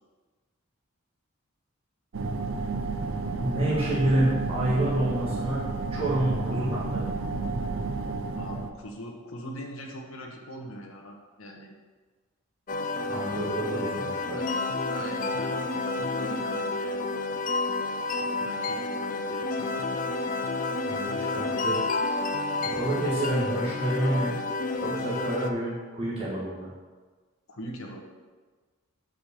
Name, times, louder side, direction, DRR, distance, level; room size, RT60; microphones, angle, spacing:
sound 1, 2.1-8.7, right 3 dB, 65° right, 0.6 m, -31 dB
voice 1, 3.4-7.1 13.1-14.4 20.9-22.0 22.6-24.4 24.8-26.7, right 1 dB, 25° right, -8 dB, 1.6 m, -28 dB
voice 2, 8.4-11.8 12.9-13.1 14.3-14.5 14.9-15.6 16.0-17.1 18.1-20.0 27.5-28.1, equal, 70° left, 0 dB, 1.4 m, -42 dB
sound 2, 12.7-25.5, left 3 dB, 35° left, 0.4 m, -30 dB
5.9 x 5.4 x 6.7 m, 1.3 s
head